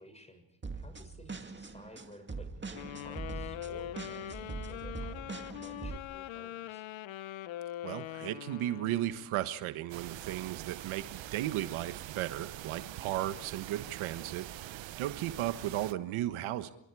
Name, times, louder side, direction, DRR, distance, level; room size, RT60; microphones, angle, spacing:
voice 1, 0.0-6.8, left 1 dB, 15° left, 8 dB, 6.9 m, -54 dB
sound 1, 0.6-6.0, right 4 dB, 25° right, 2.2 m, -42 dB
sound 2, 2.7-9.3, left 13 dB, 70° left, 1.0 m, -42 dB
voice 2, 7.8-16.7, right 14 dB, 80° right, 10 dB, 1.4 m, -35 dB
sound 3, 9.9-15.9, right 14 dB, 65° right, 1.0 m, -44 dB
29.0 x 24.5 x 4.9 m, 0.83 s
cardioid pair, 80°, 48 cm